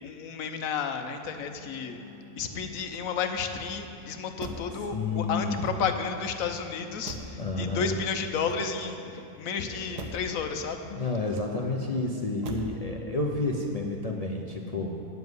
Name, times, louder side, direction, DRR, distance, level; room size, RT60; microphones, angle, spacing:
voice 1, 0.0-2.0 2.4-9.1 9.3-10.8, left 6 dB, 65° left, 7 dB, 1.1 m, -32 dB
sound 1, 1.3-12.1, left 5 dB, 20° right, 1.8 m, -55 dB
Motor vehicle (road), 2.8-3.5 4.4-4.8 5.5-6.2 7.0-7.5 8.3-9.0 9.9-10.3 11.2-11.8 12.4-12.8 13.2-13.6, right 2 dB, 85° right, 1.5 m, -42 dB
voice 2, 4.9-5.6 7.4-8.0 9.9-10.1 10.9-15.0, left 3 dB, 45° left, 0 dB, 0.4 m, -30 dB
9.4 x 7.3 x 7.9 m, 2.6 s
omnidirectional pair, 1.7 m